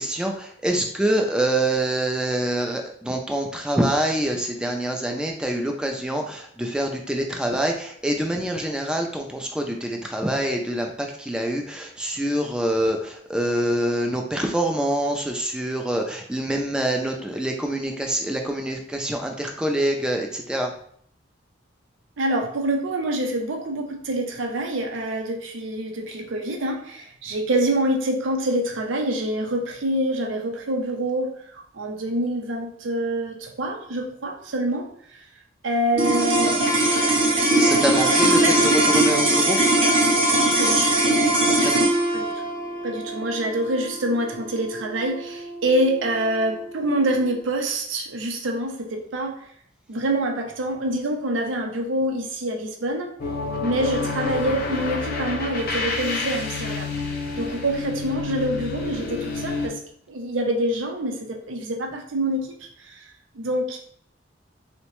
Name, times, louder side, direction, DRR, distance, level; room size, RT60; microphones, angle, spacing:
voice 1, 0.0-20.7 37.6-39.6 41.6-42.0, right 1 dB, 5° right, 2 dB, 0.3 m, -25 dB
voice 2, 22.2-34.9 35.6-36.6 38.4-38.6 40.6-40.9 42.1-42.3 42.8-49.4 49.9-53.1 53.6-56.9 57.3-59.8 60.1-61.2 61.5-63.0 63.3-63.8, right 1 dB, 85° right, 3 dB, 0.5 m, -26 dB
sound 1, 35.9-46.4, right 1 dB, 30° right, 0.7 m, -20 dB
sound 2, 53.2-59.7, left 3 dB, 50° left, 0.5 m, -29 dB
3.7 x 2.1 x 2.9 m, 0.64 s
head